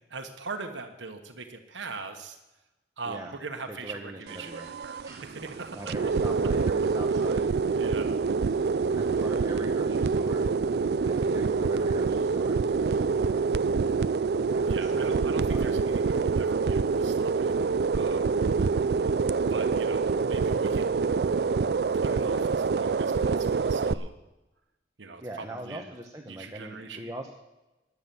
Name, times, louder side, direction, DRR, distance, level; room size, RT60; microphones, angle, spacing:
voice 1, 0.1-2.4 3.0-5.0 5.4-5.8 7.7-8.2 14.6-17.6 17.9-18.4 19.5-21.0 21.9-24.1 25.0-25.9 26.3-27.1, right 4 dB, 90° right, 6 dB, 1.2 m, -41 dB
voice 2, 3.0-3.4 3.7-4.7 5.0-5.2 5.7-7.5 8.5-8.7 9.0-10.5 11.1-13.5 14.5-15.0 15.5-15.8 25.2-27.4, right 1 dB, 20° right, 2 dB, 0.9 m, -41 dB
sound 1, 4.3-23.9, right 4 dB, 60° right, 0.4 m, -26 dB
13.5 x 9.6 x 7.0 m, 1.0 s
head